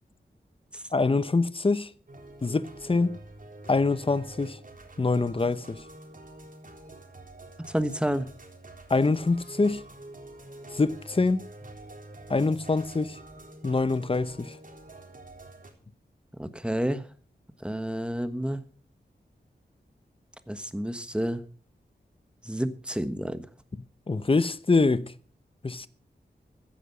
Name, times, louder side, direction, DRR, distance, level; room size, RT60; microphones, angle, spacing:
voice 1, 0.9-1.9 2.4-3.2 3.7-4.6 5.0-5.8 8.9-9.8 10.7-11.4 12.3-13.2 13.6-14.5 24.1-25.1 25.6-25.9, left 3 dB, 30° left, 0.8 m, -25 dB
sound 1, 2.1-15.7, right 2 dB, 50° right, 3.7 m, -47 dB
voice 2, 7.7-8.3 16.4-17.1 17.6-18.6 20.5-21.4 22.4-23.5, equal, 5° right, 1.3 m, -30 dB
15.0 x 10.5 x 5.5 m
wide cardioid pair, 80°, 18 cm